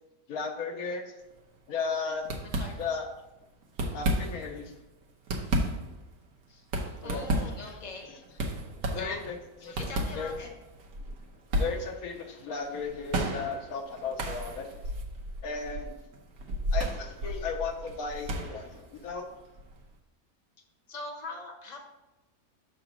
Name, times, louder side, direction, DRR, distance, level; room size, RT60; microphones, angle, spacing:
voice 1, 0.3-1.0 1.7-2.3 2.8-3.1 3.9-4.7 7.0-7.3 7.6-7.8 8.1-8.2 8.5-8.7 8.9-9.4 9.6-9.8 10.1-10.5 11.0-11.1 11.5-14.9 15.4-16.0 16.7-19.3, left 5 dB, 65° left, 4 dB, 1.2 m, -35 dB
sound 1, 1.3-1.6 1.8-2.0 2.2-3.2 3.6-4.6 5.0-19.9, right 1 dB, 65° right, 1.3 m, -33 dB
voice 2, 2.4-2.8 6.5-6.6 7.0-8.1 8.9-9.2 9.8-10.5 20.9-21.8, left 3 dB, 30° left, 1 dB, 0.9 m, -41 dB
6.1 x 3.9 x 6.0 m, 1.0 s
omnidirectional pair, 1.7 m